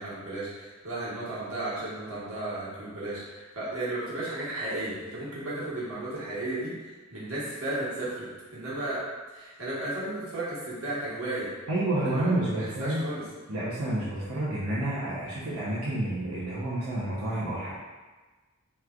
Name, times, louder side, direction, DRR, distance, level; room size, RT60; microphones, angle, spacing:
voice 1, 0.0-9.0 9.3-11.5 12.0-13.2, right 1 dB, 70° right, -8 dB, 1.2 m, -34 dB
voice 2, 11.7-13.0 13.5-17.7, right 1 dB, 90° right, -9 dB, 0.7 m, -29 dB
3.6 x 3.0 x 2.3 m, 1.3 s
head